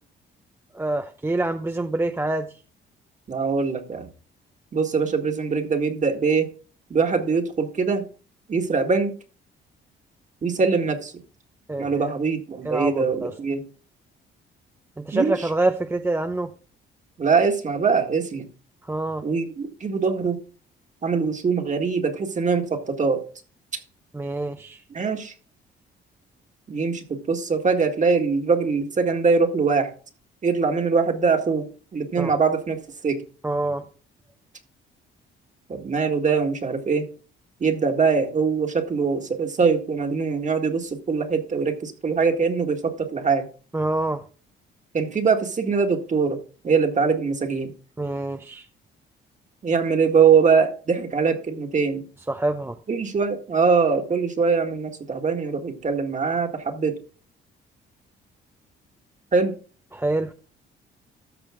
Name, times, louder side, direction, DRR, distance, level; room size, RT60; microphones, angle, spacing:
voice 1, 0.7-2.5 11.7-12.1 12.6-13.3 15.0-16.5 18.8-19.3 24.1-24.8 32.2-32.3 33.4-33.8 43.7-44.2 48.0-48.7 52.3-52.8 59.9-60.3, right 2 dB, 10° right, 0.6 m, -26 dB
voice 2, 3.3-4.1 4.7-6.5 6.9-8.1 8.5-9.1 10.4-11.1 11.8-13.7 15.1-15.5 17.2-18.5 19.2-20.4 21.0-23.2 24.9-25.3 26.7-29.9 30.4-31.7 31.9-33.2 35.7-37.1 37.6-43.5 44.9-46.4 46.6-47.7 49.6-52.0 52.9-57.0 59.3-59.6, right 5 dB, 40° right, 1.8 m, -22 dB
13.5 x 5.0 x 3.7 m
cardioid pair, 90°, 20 cm